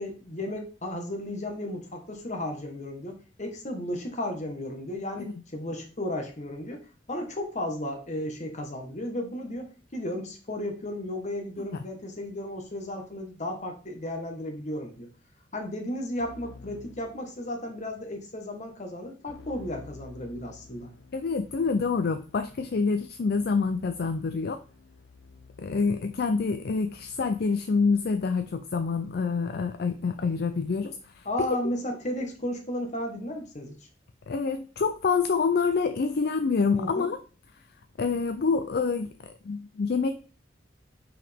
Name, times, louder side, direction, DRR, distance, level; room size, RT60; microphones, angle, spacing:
voice 1, 0.0-6.8 7.1-15.1 15.5-20.9 31.2-33.8 36.7-37.1, left 1 dB, 40° left, 1.3 m, -34 dB
Keyboard (musical), 16.2-17.9 19.3-27.7, left 4 dB, 80° left, 0.8 m, -52 dB
voice 2, 21.1-24.6 25.6-31.5 34.3-37.2 38.0-40.1, left 4 dB, 55° left, 0.4 m, -27 dB
5.9 x 4.9 x 3.5 m
head